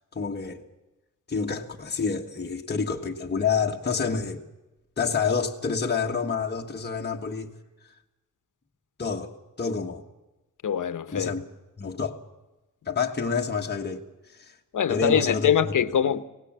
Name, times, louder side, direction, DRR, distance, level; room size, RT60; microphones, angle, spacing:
voice 1, 0.1-0.6 1.3-4.4 5.0-7.5 9.0-10.0 11.1-11.5 11.8-12.2 12.9-14.5 14.9-15.5, left 5 dB, 30° left, 1.5 m, -28 dB
voice 2, 10.6-11.3 14.7-16.2, left 8 dB, 70° left, 1.0 m, -23 dB
24.5 x 18.0 x 7.5 m
cardioid pair, 90°, 32 cm